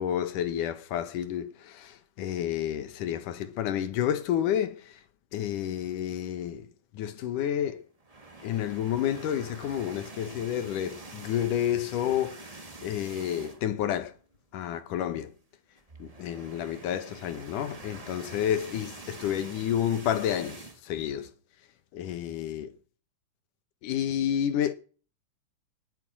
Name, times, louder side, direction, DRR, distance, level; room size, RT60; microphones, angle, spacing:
voice 1, 0.0-5.0 5.3-6.7 6.9-7.9 8.4-14.1 14.5-15.3 16.0-21.3 21.9-22.7 23.8-24.7, left 10 dB, 85° left, 2.8 m, -30 dB
sound 1, 8.0-13.8 14.2-14.3 14.6-14.7 15.8-20.8, right 2 dB, 30° right, 0.6 m, -46 dB
18.5 x 8.1 x 6.2 m
omnidirectional pair, 3.6 m